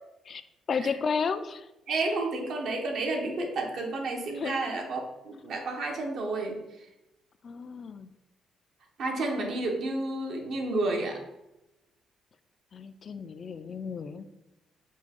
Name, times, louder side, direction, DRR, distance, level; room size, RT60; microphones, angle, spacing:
voice 1, 0.7-1.6 4.4-4.6 7.4-8.1 12.7-14.3, left 5 dB, 50° left, 12 dB, 0.3 m, -32 dB
voice 2, 1.9-6.9 9.0-11.2, right 2 dB, 70° right, 1 dB, 0.9 m, -31 dB
4.5 x 2.3 x 4.2 m, 0.94 s
cardioid pair, 90°, 0 cm